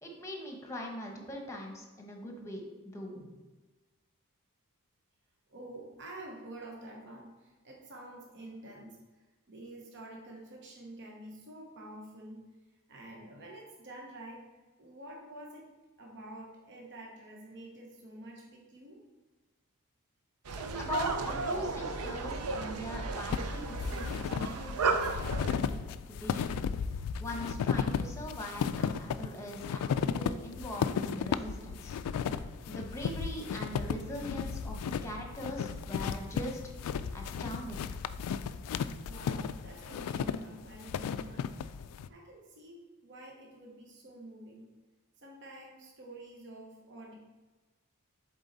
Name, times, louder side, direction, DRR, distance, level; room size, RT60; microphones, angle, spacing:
voice 1, 0.0-2.6 2.9-3.3 20.7-25.8 26.1-26.6 27.2-32.4 32.7-36.6 37.1-37.8, equal, 15° left, 1 dB, 1.0 m, -41 dB
voice 2, 5.5-9.0 9.5-12.4 12.9-14.4 14.8-15.6 16.0-19.0 39.0-41.5 42.1-44.7 45.2-47.2, right 1 dB, 55° right, -1 dB, 1.0 m, -48 dB
sound 1, 20.4-25.6, right 4 dB, 80° right, 0.6 m, -34 dB
sound 2, 23.3-42.1, left 7 dB, 90° left, 0.3 m, -34 dB
7.2 x 3.9 x 4.0 m, 1.2 s
head